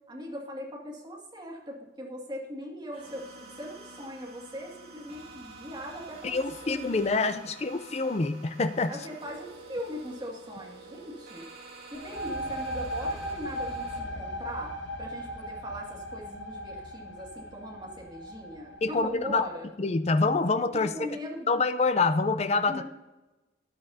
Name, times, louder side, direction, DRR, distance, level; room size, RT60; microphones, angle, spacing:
voice 1, 0.1-7.3 8.9-11.5 11.9-14.7 15.0-19.7 20.7-21.5 22.7-22.8, equal, 25° right, -1 dB, 2.2 m, -40 dB
sound 1, 2.9-14.0, right 3 dB, 55° right, 2.7 m, -48 dB
voice 2, 6.2-9.0 18.8-19.4 19.8-20.9 21.5-22.8, left 3 dB, 35° left, 10 dB, 0.5 m, -26 dB
sound 2, 11.9-19.4, equal, 85° left, 1.3 m, -37 dB
13.5 x 9.6 x 2.8 m, 1.1 s
head